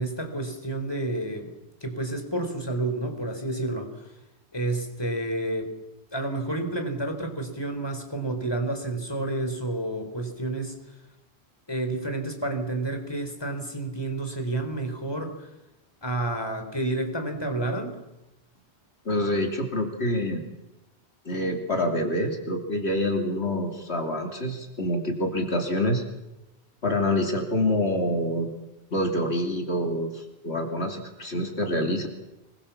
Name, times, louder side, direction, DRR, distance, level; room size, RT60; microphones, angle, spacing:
voice 1, 0.0-1.5 1.8-4.1 4.5-5.7 6.1-10.8 11.7-15.5 16.0-18.0, right 2 dB, 20° left, 5 dB, 4.2 m, -30 dB
voice 2, 19.0-20.4 21.2-26.0 26.8-28.5 28.9-32.1, left 1 dB, 70° left, 3 dB, 3.1 m, -26 dB
25.5 x 22.5 x 7.3 m, 0.95 s
omnidirectional pair, 1.1 m